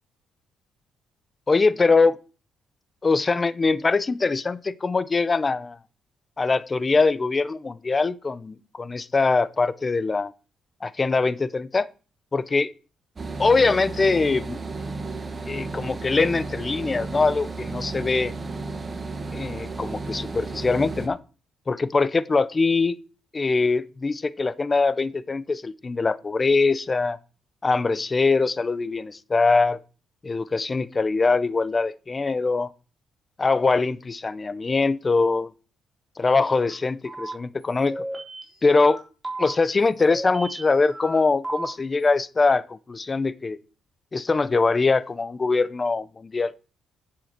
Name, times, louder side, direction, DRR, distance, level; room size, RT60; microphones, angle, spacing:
voice 1, 1.5-2.2 3.0-5.8 6.4-10.3 10.8-11.9 12.3-12.7 13.4-14.6 15.5-18.3 19.3-21.2 21.7-23.0 23.3-27.2 27.6-29.8 30.2-32.7 33.4-35.5 36.2-38.0 38.6-39.0 39.4-43.6 44.1-46.5, left 4 dB, 30° left, 0.7 m, -22 dB
sound 1, 13.2-21.1, right 3 dB, 35° right, 1.8 m, -33 dB
sound 2, 36.5-36.8 37.0-37.3 37.9-39.0 39.2-39.5 40.1-41.2 41.4-41.7, right 2 dB, 15° right, 3.7 m, -34 dB
10.5 x 7.8 x 4.5 m
cardioid pair, 90°, 0 cm